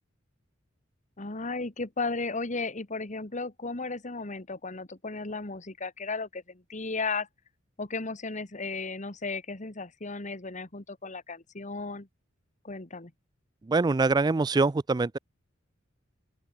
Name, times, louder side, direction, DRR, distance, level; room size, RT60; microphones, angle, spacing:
voice 1, 1.2-7.3 7.8-12.1 12.6-13.1, left 3 dB, 40° left, 1.7 m, -35 dB
voice 2, 13.7-15.2, right 3 dB, 20° right, 0.4 m, -24 dB
open air
head